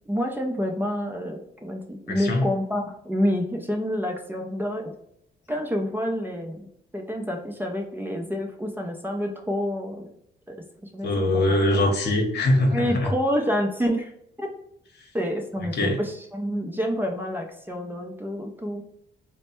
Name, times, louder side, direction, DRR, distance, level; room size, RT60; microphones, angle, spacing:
voice 1, 0.1-4.9 5.5-10.1 10.5-10.6 10.8-11.6 12.7-14.1 14.4-14.5 15.1-18.8, equal, 10° right, 1 dB, 0.6 m, -28 dB
voice 2, 2.1-2.5 11.0-13.1 15.0-15.1 15.7-16.0, left 1 dB, 60° left, 3 dB, 0.9 m, -22 dB
3.2 x 2.1 x 4.3 m, 0.72 s
cardioid pair, 90°, 20 cm